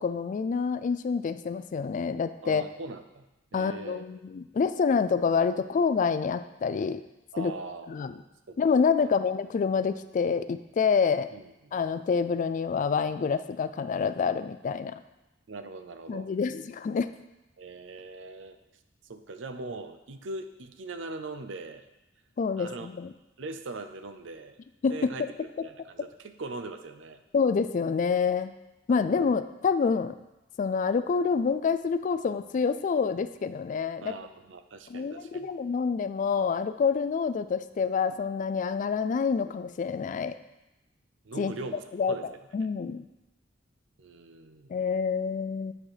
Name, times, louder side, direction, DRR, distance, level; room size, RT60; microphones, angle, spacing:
voice 1, 0.0-2.6 3.5-7.0 7.4-7.5 7.9-8.1 8.6-11.3 11.7-15.0 16.1-17.1 22.4-23.1 24.8-25.3 25.6-25.7 27.3-28.5 28.9-30.1 30.6-34.1 34.9-40.4 41.4-41.5 41.9-42.2 42.5-43.1 44.7-45.7, left 5 dB, 40° left, 12 dB, 0.3 m, -27 dB
voice 2, 2.4-3.3 3.5-4.1 7.3-8.1 8.5-8.6 9.0-9.1 11.3-11.7 15.5-16.3 17.6-18.6 19.0-21.9 22.6-22.9 23.4-24.6 24.9-27.2 29.0-29.4 34.0-35.5 41.2-42.3 44.0-44.7, right 3 dB, 70° right, 9 dB, 0.6 m, -41 dB
8.7 x 4.2 x 4.9 m, 0.98 s
head